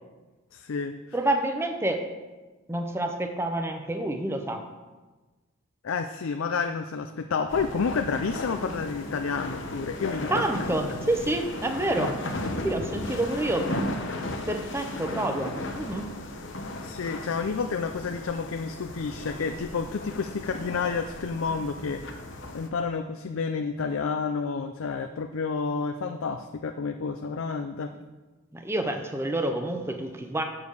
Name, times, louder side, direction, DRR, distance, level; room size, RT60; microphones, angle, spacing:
voice 1, 0.5-0.9 5.8-10.6 16.8-22.2 22.5-27.9, left 5 dB, 75° left, 7 dB, 0.5 m, -30 dB
voice 2, 1.1-2.1 2.7-4.7 10.3-12.2 12.6-13.7 14.5-16.1 28.5-30.4, right 1 dB, 10° right, 5 dB, 0.6 m, -28 dB
sound 1, 7.5-22.7, left 1 dB, 60° left, 1.0 m, -35 dB
7.3 x 6.9 x 6.4 m, 1.2 s
head